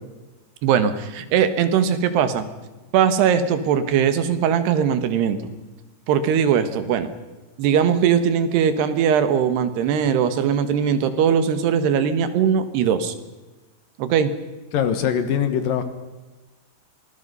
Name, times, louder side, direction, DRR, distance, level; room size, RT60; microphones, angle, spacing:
voice 1, 0.6-2.5 2.9-5.4 6.1-7.1 7.6-13.2 14.0-14.3, right 8 dB, 85° right, 11 dB, 3.5 m, -20 dB
voice 2, 14.7-15.8, left 8 dB, 65° left, 10 dB, 2.9 m, -22 dB
26.0 x 20.5 x 5.5 m, 1.2 s
omnidirectional pair, 4.6 m